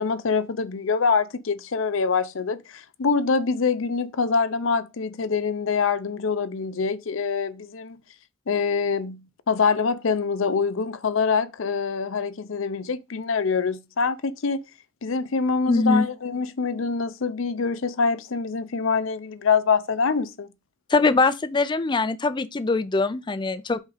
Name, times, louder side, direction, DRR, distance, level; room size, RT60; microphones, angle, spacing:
voice 1, 0.0-8.0 8.5-14.6 15.0-20.5, left 5 dB, 70° left, 0.6 m, -25 dB
voice 2, 15.7-16.1 20.9-23.8, left 3 dB, 20° left, 0.4 m, -22 dB
5.3 x 3.6 x 4.9 m
head